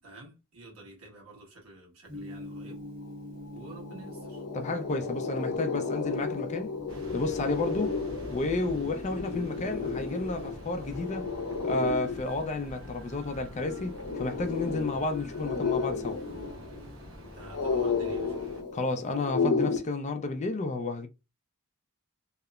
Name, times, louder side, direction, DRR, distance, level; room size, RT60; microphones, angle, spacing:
voice 1, 0.0-2.8 3.5-4.4 17.2-18.4, right 2 dB, 85° right, 1.3 m, -49 dB
Gong, 2.1-19.3, equal, 50° right, 1.2 m, -49 dB
sound 1, 3.2-3.3 3.6-19.8, left 4 dB, 80° left, 0.6 m, -33 dB
voice 2, 4.5-6.8 7.1-8.0 8.3-11.3 11.6-16.2 18.7-21.1, left 2 dB, 35° left, 0.4 m, -31 dB
sound 2, 6.9-18.6, equal, 65° right, 0.8 m, -46 dB
2.8 x 2.0 x 2.3 m
head